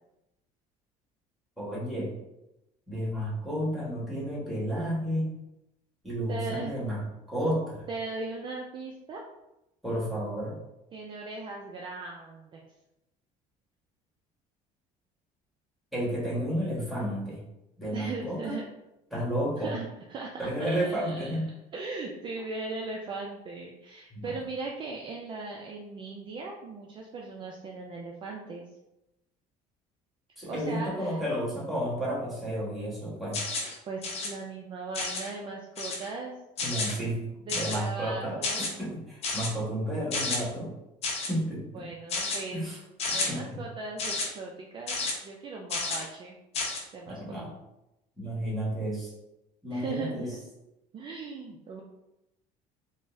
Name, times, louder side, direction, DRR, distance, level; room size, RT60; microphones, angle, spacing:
voice 1, 1.6-2.1 2.9-5.3 6.0-7.0 7.3-7.9 9.8-10.5 15.9-17.4 17.8-18.5 19.1-19.7 20.4-21.5 24.1-24.3 30.4-33.4 36.6-40.7 41.3-41.9 42.5-42.8 43.1-43.6 47.1-47.5 48.2-49.1 49.6-50.3, equal, ahead, -7 dB, 1.2 m, -32 dB
voice 2, 6.3-6.7 7.9-9.2 10.9-12.6 17.9-18.6 19.6-21.4 21.7-28.7 30.5-31.3 33.9-36.4 37.4-38.7 41.6-42.7 43.1-46.4 46.9-47.4 49.7-50.3 50.9-51.8, right 3 dB, 35° right, 0 dB, 0.3 m, -38 dB
sound 1, 33.3-33.7 34.0-34.3 34.9-35.3 35.8-36.1 36.6-36.9 37.5-37.9 38.4-38.7 39.2-39.5 40.1-40.4 41.0-41.3 42.1-42.4 43.0-43.3 44.0-44.3 44.9-45.1 45.7-46.0 46.5-46.8, left 3 dB, 45° left, 0.7 m, -31 dB
3.8 x 2.0 x 2.5 m, 0.91 s
cardioid pair, 125°, 15 cm